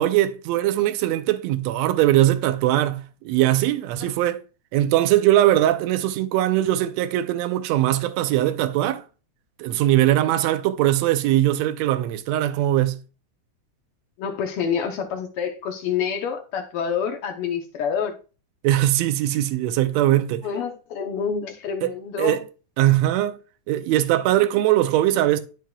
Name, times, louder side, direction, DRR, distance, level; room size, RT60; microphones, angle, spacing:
voice 1, 0.0-4.4 4.7-9.0 9.6-13.0 18.6-20.5 21.8-21.9 22.2-22.5 22.8-23.4 23.7-25.4, right 14 dB, 75° right, 1.7 m, -21 dB
voice 2, 14.2-18.1 20.4-22.4, left 7 dB, 70° left, 1.4 m, -27 dB
13.0 x 4.6 x 2.3 m
omnidirectional pair, 3.5 m